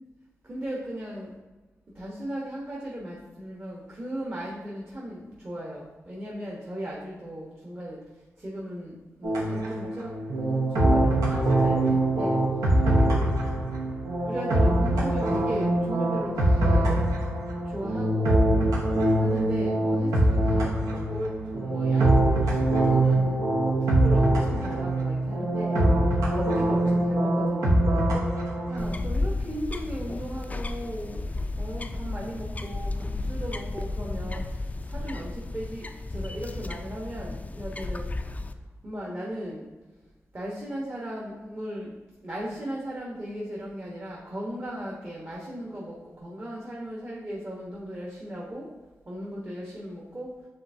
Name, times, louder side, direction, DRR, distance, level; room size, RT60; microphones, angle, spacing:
voice 1, 0.4-1.3 1.9-8.0 8.4-12.4 14.2-17.0 17.7-18.3 19.2-22.6 22.8-25.8 26.3-28.0 28.7-31.3 31.6-38.1 38.8-39.7 40.3-41.9 42.2-48.7 49.1-50.3, equal, 40° right, -4 dB, 1.0 m, -37 dB
sound 1, 9.2-28.9, right 1 dB, 90° right, 0.8 m, -23 dB
sound 2, 28.8-38.5, left 2 dB, 25° left, 0.3 m, -33 dB
5.7 x 3.4 x 2.6 m, 1.2 s
cardioid pair, 50°, 6 cm